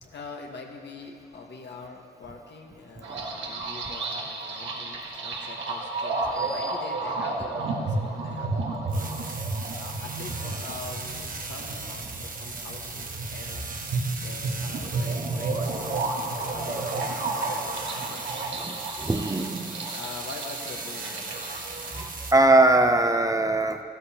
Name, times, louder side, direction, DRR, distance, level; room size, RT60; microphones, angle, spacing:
voice 1, 0.0-9.4 9.7-13.7 14.2-18.3 19.9-21.8, left 4 dB, 70° left, 1 dB, 1.5 m, -44 dB
sound 1, 3.0-22.1, right 3 dB, 90° right, 1.4 m, -32 dB
voice 2, 6.3-6.7 18.6-19.9 22.3-23.8, right 2 dB, 20° right, 6 dB, 0.7 m, -22 dB
sound 2, 8.9-22.3, right 4 dB, 45° right, 1.1 m, -38 dB
14.5 x 13.0 x 2.9 m, 2.4 s
cardioid pair, 75°, 19 cm